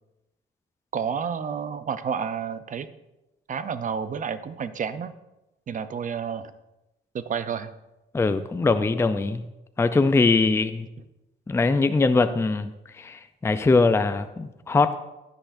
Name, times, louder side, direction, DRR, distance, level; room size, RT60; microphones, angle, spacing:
voice 1, 0.9-2.9 3.5-5.2 5.7-6.5 7.1-7.7, right 7 dB, 40° right, 13 dB, 0.6 m, -30 dB
voice 2, 8.1-9.4 9.8-10.9 11.5-15.0, left 3 dB, 15° left, 10 dB, 0.4 m, -22 dB
10.5 x 10.0 x 2.6 m, 0.96 s
cardioid pair, 90°, 20 cm